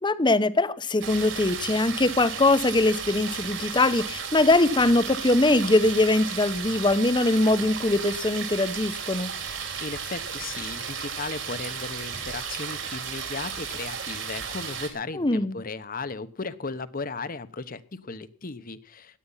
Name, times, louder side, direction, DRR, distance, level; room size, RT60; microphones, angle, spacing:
voice 1, 0.0-9.3 15.2-15.6, left 2 dB, 25° left, 15 dB, 0.9 m, -22 dB
sound 1, 1.0-14.9, right 6 dB, 75° right, 4.5 m, -34 dB
voice 2, 9.8-19.2, left 3 dB, 45° left, 14 dB, 1.0 m, -36 dB
17.0 x 11.0 x 5.7 m, 0.40 s
head